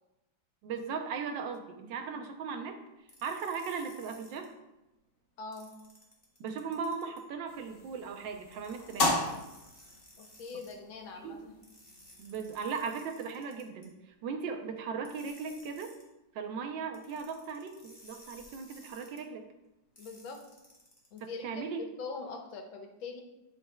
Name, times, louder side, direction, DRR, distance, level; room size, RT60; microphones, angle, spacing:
voice 1, 0.6-2.8 3.2-4.5 6.4-9.1 11.2-11.4 12.2-15.9 16.3-19.5 21.2-21.9, right 5 dB, 75° right, 5 dB, 1.3 m, -38 dB
sound 1, 3.1-4.5 5.5-7.2 8.5-10.7 11.6-13.9 15.0-16.1 16.9-19.2 20.0-21.2, left 1 dB, 15° left, 1.3 m, -56 dB
voice 2, 5.4-5.7 10.2-11.5 20.0-20.4 21.1-23.2, left 4 dB, 85° left, 3 dB, 1.7 m, -42 dB
sound 2, 7.5-12.9, left 2 dB, 65° left, 0.5 m, -36 dB
10.5 x 4.4 x 2.2 m, 0.97 s
omnidirectional pair, 2.1 m